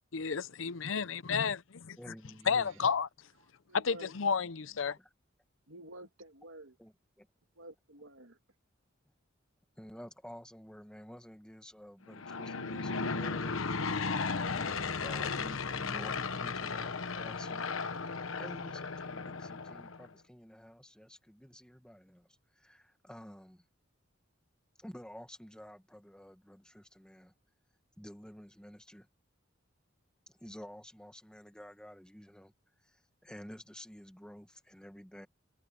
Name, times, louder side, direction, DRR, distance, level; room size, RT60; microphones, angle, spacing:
voice 1, 0.1-1.6 1.9-2.0 2.5-3.1 3.7-5.0, left 6 dB, 70° left, 0.6 m, -31 dB
voice 2, 2.0-2.8 5.0-5.1 6.8-7.3 9.8-13.6 14.5-17.7 18.4-23.6 24.8-27.3 28.0-29.1 30.3-32.5 32.8-35.3, equal, 5° left, 1.8 m, -51 dB
voice 3, 3.7-4.1 5.7-6.8 7.6-8.4, right 1 dB, 80° right, 2.5 m, -50 dB
Aircraft / Engine, 12.1-20.1, left 4 dB, 85° left, 1.2 m, -35 dB
head